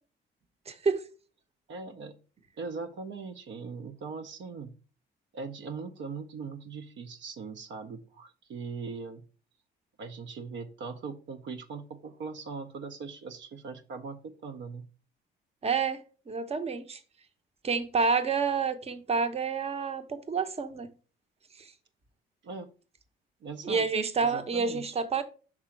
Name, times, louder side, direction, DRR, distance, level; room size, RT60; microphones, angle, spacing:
voice 1, 0.7-1.0 15.6-17.0 17.6-20.9 21.6-21.7 23.6-25.2, right 5 dB, 30° right, 0.8 m, -29 dB
voice 2, 1.7-2.1 2.6-4.8 5.3-9.3 10.0-14.9 22.4-22.7 23.4-23.9 24.2-25.0, right 4 dB, 70° right, 0.6 m, -40 dB
6.1 x 3.7 x 4.4 m
cardioid pair, 90°, 20 cm